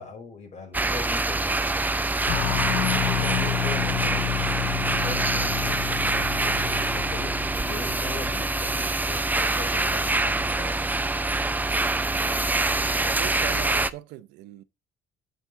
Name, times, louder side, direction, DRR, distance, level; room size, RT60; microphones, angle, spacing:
voice 1, 0.0-1.7 2.9-7.4 7.7-10.8, left 4 dB, 45° left, 4.3 m, -39 dB
sound 1, 0.7-13.9, right 2 dB, 10° right, 0.5 m, -25 dB
sound 2, 2.3-8.6, left 16 dB, 80° left, 0.8 m, -30 dB
voice 2, 13.2-14.6, right 15 dB, 90° right, 0.8 m, -39 dB
8.2 x 8.1 x 3.6 m
cardioid pair, 110°, 17 cm